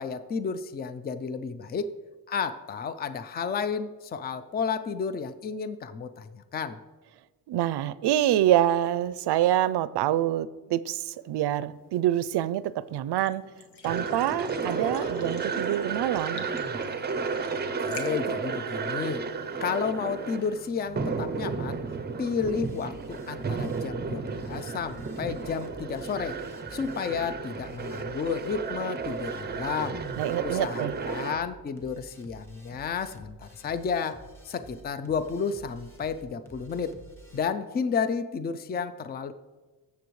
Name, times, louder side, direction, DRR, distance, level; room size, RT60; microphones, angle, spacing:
voice 1, 0.0-1.9 2.3-6.8 17.5-19.3 19.6-21.9 22.2-26.4 26.7-30.0 30.4-34.2 34.4-37.0 37.3-39.3, left 6 dB, 25° left, 12 dB, 0.4 m, -32 dB
voice 2, 7.5-13.4 13.8-16.5 30.2-30.9, right 12 dB, 85° right, 17 dB, 0.5 m, -26 dB
sound 1, 11.1-19.6, left 5 dB, 80° left, 1.3 m, -50 dB
sound 2, 13.8-31.4, right 5 dB, 25° right, 0.5 m, -33 dB
sound 3, 22.4-37.4, right 2 dB, 5° left, 1.2 m, -50 dB
14.5 x 7.0 x 3.1 m, 1.3 s
wide cardioid pair, 150°, 39 cm